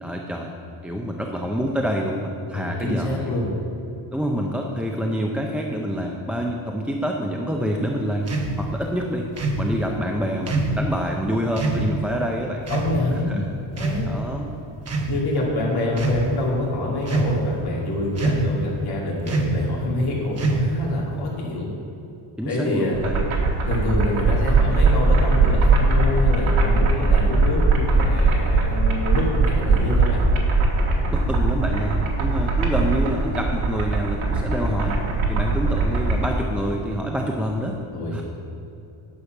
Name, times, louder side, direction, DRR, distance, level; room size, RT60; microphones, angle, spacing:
voice 1, 0.0-0.5 0.8-3.4 4.1-8.3 8.6-9.3 9.6-12.6 13.3-13.5 14.0-14.5 22.4-23.3 31.1-35.0 35.3-37.8 38.1-38.2, equal, 5° right, 0 dB, 0.5 m, -27 dB
voice 2, 2.5-3.5 12.7-13.4 13.7-14.1 15.0-21.7 22.4-23.0 23.7-30.2 37.9-38.2, left 2 dB, 50° left, -4 dB, 2.6 m, -26 dB
sound 1, 8.3-8.5 9.4-9.6 10.5-10.8 11.6-11.8 12.7-12.9 13.7-14.3 14.8-15.1 15.9-16.2 17.1-17.5 18.2-18.6 19.3-19.6 20.4-20.8, right 3 dB, 30° right, 1.0 m, -24 dB
sound 2, 22.9-36.3, right 3 dB, 70° right, 1.7 m, -20 dB
10.0 x 6.9 x 5.9 m, 2.9 s
wide cardioid pair, 160°, 49 cm